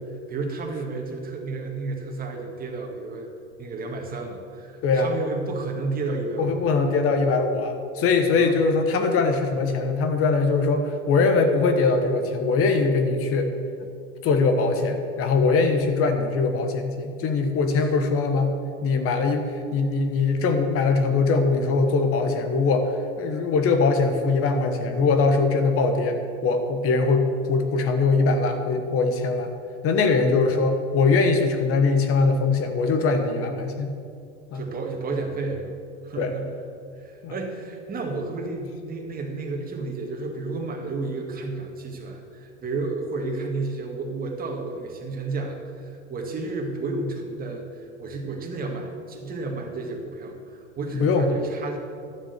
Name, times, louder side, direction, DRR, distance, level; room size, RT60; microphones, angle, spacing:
voice 1, 0.3-3.3 3.6-6.6 8.4-8.5 17.7-17.8 34.5-35.8 36.0-36.5 37.0-51.8, right 3 dB, 25° right, 2 dB, 2.0 m, -32 dB
voice 2, 4.8-5.1 6.4-13.5 14.2-18.5 18.8-19.4 19.7-22.9 23.2-29.5 29.8-33.9 34.5-34.6 36.1-36.3 37.2-37.3 50.9-51.3, left 4 dB, 40° left, 7 dB, 1.4 m, -22 dB
12.0 x 7.5 x 6.7 m, 2.3 s
hypercardioid pair, 110°, 35 cm